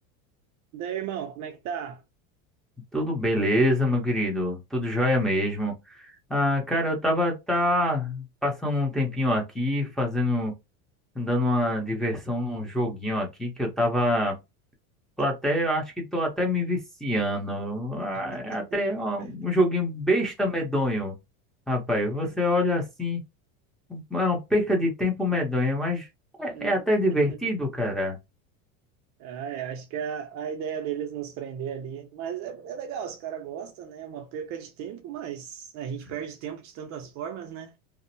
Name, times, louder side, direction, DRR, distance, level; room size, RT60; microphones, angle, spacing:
voice 1, 0.7-2.0 18.5-18.7 22.2-22.3 26.5-26.8 27.3-27.5 29.2-37.8, right 8 dB, 45° right, 0.4 m, -35 dB
voice 2, 2.9-10.5 11.2-14.4 15.2-21.2 21.7-23.2 23.9-26.1 26.4-28.2, left 1 dB, ahead, 0.6 m, -26 dB
2.6 x 2.0 x 2.6 m
supercardioid pair, 125°, 42 cm